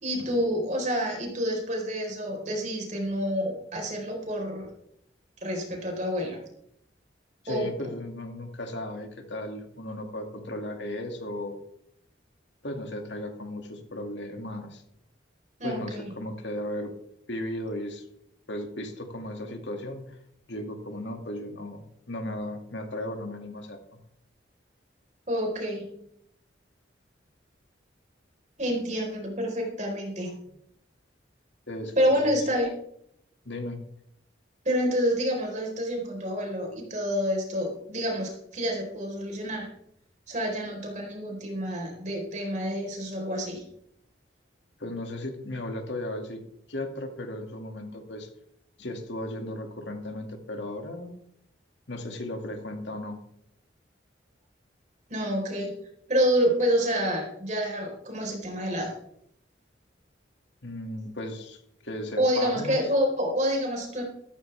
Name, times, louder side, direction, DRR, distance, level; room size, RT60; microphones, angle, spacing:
voice 1, 0.0-4.7 5.4-6.4 7.5-7.7 15.6-16.1 25.3-26.0 28.6-30.3 32.0-32.7 34.6-39.7 40.3-43.6 55.1-55.7 56.1-58.9 62.2-64.0, equal, 40° right, 1 dB, 4.3 m, -28 dB
voice 2, 7.4-11.6 12.6-14.8 15.6-16.9 17.3-18.1 18.5-20.2 20.5-23.8 31.7-32.3 33.4-33.8 44.8-46.4 46.7-48.3 48.8-51.1 51.9-53.2 60.6-62.8, left 1 dB, 70° left, 4 dB, 2.3 m, -36 dB
15.0 x 13.5 x 3.5 m, 0.72 s
head